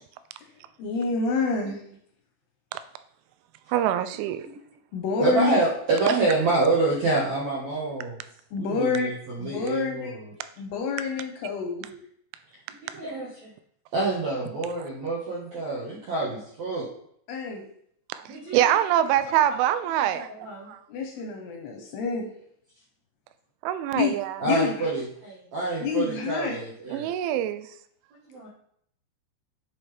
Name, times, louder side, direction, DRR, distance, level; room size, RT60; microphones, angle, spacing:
voice 1, 0.8-1.8 4.9-5.6 8.5-9.1 9.4-10.1 10.6-11.9 17.3-17.6 20.9-22.3 23.9-24.1 24.4-24.9 25.8-26.6, left 5 dB, 75° left, 2 dB, 2.6 m, -28 dB
voice 2, 3.7-4.5 18.1-18.2 18.5-20.3 20.7-20.8 23.6-24.4 26.9-27.7, right 11 dB, 85° right, 12 dB, 3.0 m, -24 dB
voice 3, 5.2-8.2 8.6-10.3 11.9-12.0 12.8-13.5 13.9-16.9 18.2-18.7 19.0-19.1 19.9-20.7 24.4-27.1 28.3-28.5, right 3 dB, 70° right, -6 dB, 1.7 m, -27 dB
10.5 x 5.6 x 3.3 m, 0.67 s
omnidirectional pair, 5.4 m